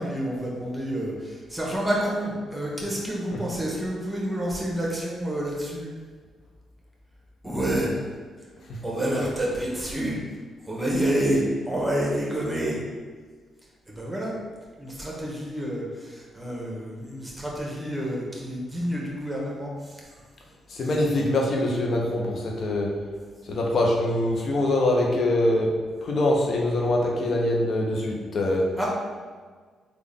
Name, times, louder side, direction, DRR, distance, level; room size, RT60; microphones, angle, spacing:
voice 1, 0.0-5.9 7.4-8.1 8.8-10.2 10.6-12.8 13.9-14.3 14.8-20.0 28.8-28.9, right 1 dB, 15° right, -4 dB, 1.2 m, -28 dB
voice 2, 20.7-22.9 23.5-25.7 26.0-28.7, left 1 dB, 60° left, -1 dB, 0.7 m, -24 dB
3.6 x 2.4 x 3.5 m, 1.5 s
supercardioid pair, 50°, 0 cm